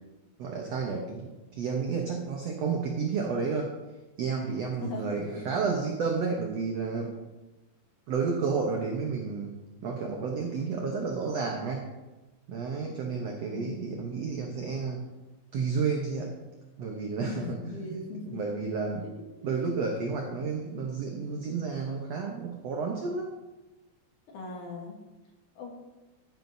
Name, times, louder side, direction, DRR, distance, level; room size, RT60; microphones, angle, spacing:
voice 1, 0.4-3.7 4.2-7.1 8.1-9.5 9.8-11.9 12.5-15.0 15.5-16.3 16.8-18.0 18.3-19.0 19.4-23.3, right 5 dB, 80° right, 1 dB, 1.4 m, -31 dB
voice 2, 4.8-5.5 13.5-13.9 17.3-18.4 19.4-19.7 24.3-25.0 25.6-25.7, left 3 dB, 65° left, 1 dB, 2.4 m, -39 dB
11.0 x 10.5 x 2.7 m, 1.1 s
omnidirectional pair, 4.3 m